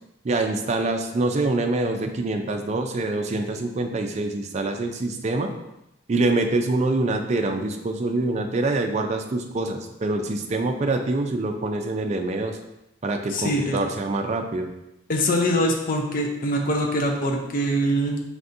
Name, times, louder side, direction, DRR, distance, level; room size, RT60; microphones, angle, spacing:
voice 1, 0.2-5.5 6.1-12.6 13.0-14.7, right 2 dB, 35° right, 4 dB, 0.4 m, -25 dB
voice 2, 13.3-13.8 15.1-18.2, equal, 45° left, 1 dB, 0.6 m, -23 dB
5.0 x 3.3 x 2.6 m, 0.88 s
head